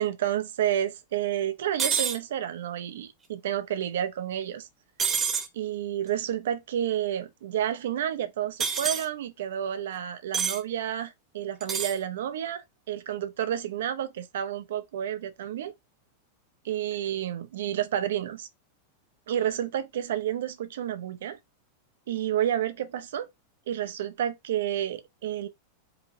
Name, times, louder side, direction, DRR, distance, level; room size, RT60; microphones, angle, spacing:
voice 1, 0.0-4.7 5.5-15.7 16.7-18.5 19.3-21.4 22.1-23.3 23.7-25.5, right 10 dB, 60° right, 0.6 m, -30 dB
sound 1, 1.8-2.2 5.0-5.5 8.6-9.1 10.3-10.6 11.6-12.0, right 6 dB, 20° right, 0.9 m, -27 dB
4.8 x 2.9 x 2.6 m
figure-of-eight pair, 90°, 0 cm